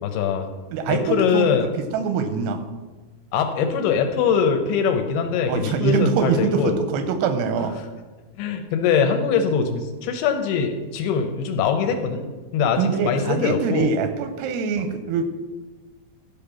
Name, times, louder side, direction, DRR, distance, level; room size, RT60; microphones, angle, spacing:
voice 1, 0.1-0.5 0.9-1.7 3.3-6.8 8.4-12.2 12.5-13.9 14.8-14.9, left 6 dB, 75° left, 6 dB, 2.6 m, -22 dB
voice 2, 0.7-1.5 1.9-2.6 5.5-7.7 12.8-15.3, right 5 dB, 85° right, 8 dB, 2.6 m, -23 dB
12.0 x 5.3 x 5.8 m, 1.3 s
omnidirectional pair, 4.9 m